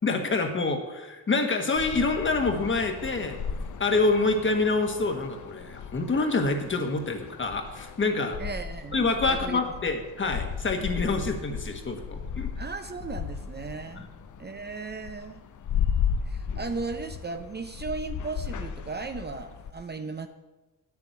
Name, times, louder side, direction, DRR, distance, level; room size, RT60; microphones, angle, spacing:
voice 1, 0.0-3.4 3.8-8.4 8.9-12.5, left 3 dB, 35° left, 5 dB, 1.6 m, -26 dB
sound 1, 1.8-19.7, left 7 dB, 60° left, 0.8 m, -35 dB
voice 2, 8.4-9.0 9.3-9.6 12.6-14.1 14.4-15.4 16.3-20.3, right 4 dB, 30° right, 8 dB, 0.6 m, -36 dB
9.6 x 7.1 x 9.2 m, 1.1 s
wide cardioid pair, 145°, 34 cm